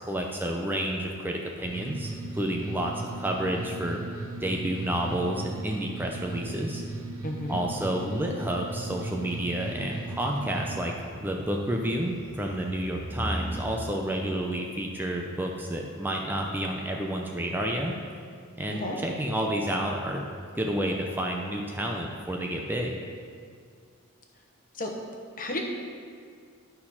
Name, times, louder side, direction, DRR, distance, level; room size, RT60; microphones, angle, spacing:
voice 1, 0.0-4.0 4.4-6.8 7.5-17.9 18.6-20.3 20.6-22.9, right 1 dB, 10° right, 0 dB, 0.5 m, -30 dB
sound 1, 1.6-10.7, right 2 dB, 70° right, 1.2 m, -37 dB
voice 2, 7.2-7.6 18.7-19.0 24.8-24.9 25.4-25.6, left 1 dB, 40° left, 1 dB, 1.1 m, -32 dB
sound 2, 8.8-13.7, equal, 20° left, 1.8 m, -40 dB
11.0 x 4.4 x 5.7 m, 2.2 s
head